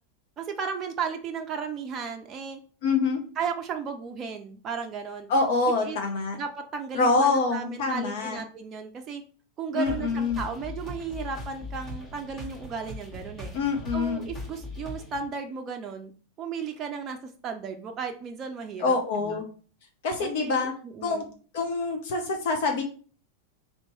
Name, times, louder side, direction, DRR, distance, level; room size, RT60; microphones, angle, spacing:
voice 1, 0.4-2.6 3.4-5.3 5.8-6.0 6.4-9.2 9.6-13.5 13.9-16.1 16.4-19.0 19.2-19.4 20.2-21.3, right 6 dB, 30° right, 4 dB, 0.5 m, -35 dB
voice 2, 2.8-3.2 5.3-6.4 6.9-8.4 9.7-10.4 13.5-14.2 18.8-19.4 20.0-20.7 21.0-21.2 21.5-22.8, left 3 dB, 50° left, 3 dB, 0.8 m, -25 dB
sound 1, 9.9-15.2, left 1 dB, 35° left, 1.5 m, -39 dB
3.0 x 3.0 x 4.3 m, 0.40 s
figure-of-eight pair, 90°, 0 cm